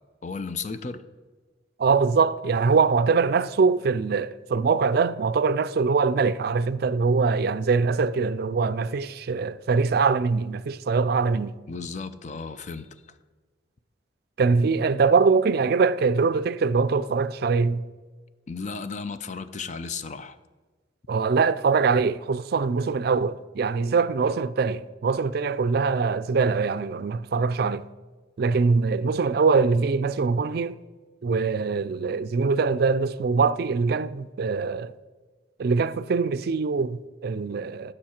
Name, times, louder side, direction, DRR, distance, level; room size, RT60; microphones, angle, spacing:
voice 1, 0.2-1.0 11.7-12.9 18.5-20.4, left 4 dB, 40° left, 0.5 m, -34 dB
voice 2, 1.8-11.5 14.4-17.8 21.1-27.8 28.4-30.8 31.2-34.9 35.6-37.9, right 4 dB, 55° right, 0.4 m, -23 dB
15.0 x 6.5 x 4.4 m
head